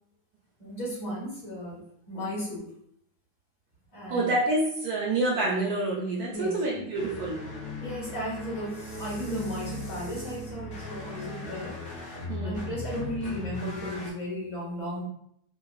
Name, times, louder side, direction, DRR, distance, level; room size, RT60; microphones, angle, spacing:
voice 1, 0.6-1.8 2.1-2.7 3.9-4.3 6.3-6.8 7.8-11.8 12.4-15.0, equal, 15° left, -7 dB, 1.4 m, -35 dB
voice 2, 4.1-7.4 12.3-12.6, right 2 dB, 70° right, -3 dB, 0.9 m, -27 dB
sound 1, 6.9-14.1, left 2 dB, 60° left, 0.7 m, -38 dB
3.5 x 2.5 x 2.3 m, 0.70 s
omnidirectional pair, 2.2 m